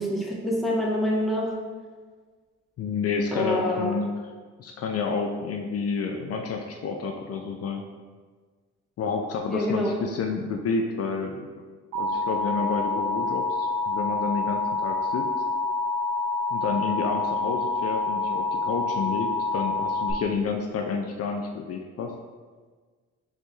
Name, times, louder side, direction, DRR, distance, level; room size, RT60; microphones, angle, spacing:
voice 1, 0.0-1.5 3.3-3.9 9.5-9.9, equal, ahead, -3 dB, 1.0 m, -26 dB
voice 2, 2.8-4.1 4.6-7.9 9.0-11.5 11.9-15.3 16.5-22.1, left 5 dB, 55° left, 2 dB, 0.5 m, -29 dB
Alarm, 11.9-20.1, left 3 dB, 85° right, 0.8 m, -27 dB
4.1 x 4.0 x 3.2 m, 1.5 s
cardioid pair, 90°, 30 cm